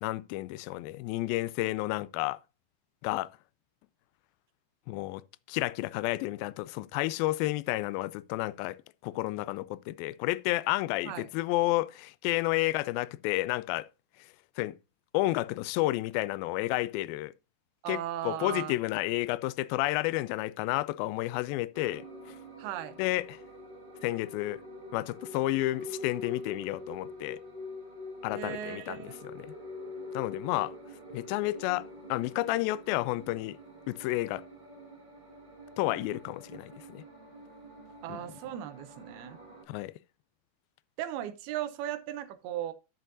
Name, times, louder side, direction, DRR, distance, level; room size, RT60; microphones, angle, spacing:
voice 1, 0.0-2.4 3.0-3.3 4.9-5.2 5.5-8.8 9.0-13.9 14.6-14.7 15.1-17.3 17.9-22.4 23.0-23.4 24.0-24.6 24.9-27.4 28.2-29.0 29.2-29.5 30.1-30.8 31.1-33.6 33.9-34.4 35.8-37.0 38.1-38.2 39.7-39.9, left 18 dB, 80° left, 2.3 m, -31 dB
voice 2, 17.8-18.8 22.6-22.9 28.3-29.2 38.0-39.4 41.0-42.7, right 11 dB, 85° right, 2.7 m, -37 dB
sound 1, 21.7-39.6, left 1 dB, 35° right, 0.7 m, -45 dB
12.0 x 6.8 x 2.6 m
omnidirectional pair, 4.3 m